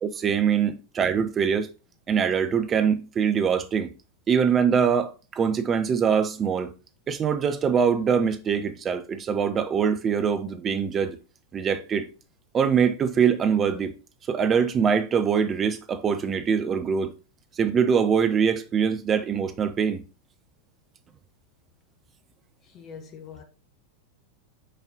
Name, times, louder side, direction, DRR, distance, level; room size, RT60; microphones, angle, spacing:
voice 1, 0.0-1.7 2.1-3.9 4.3-6.7 7.1-11.2 11.5-12.0 12.5-13.9 14.3-17.1 17.6-20.0, right 7 dB, 25° right, 0.8 m, -23 dB
voice 2, 22.6-23.4, left 6 dB, 30° left, 1.0 m, -44 dB
6.6 x 4.2 x 3.9 m
figure-of-eight pair, 90°, 0 cm